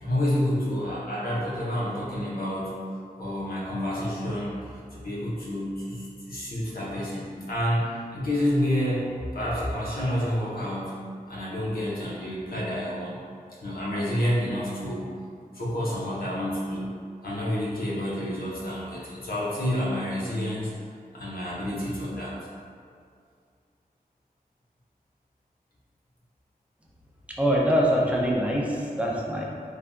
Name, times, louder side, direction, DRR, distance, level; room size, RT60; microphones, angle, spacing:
voice 1, 0.0-2.8 3.1-4.6 4.9-11.0 11.3-13.2 13.6-15.1 15.5-16.8 17.2-20.7 21.1-22.3, equal, 75° left, -7 dB, 0.7 m, -29 dB
voice 2, 27.4-29.4, equal, 10° right, -3 dB, 0.5 m, -24 dB
3.3 x 2.4 x 2.2 m, 2.2 s
wide cardioid pair, 75°, 16 cm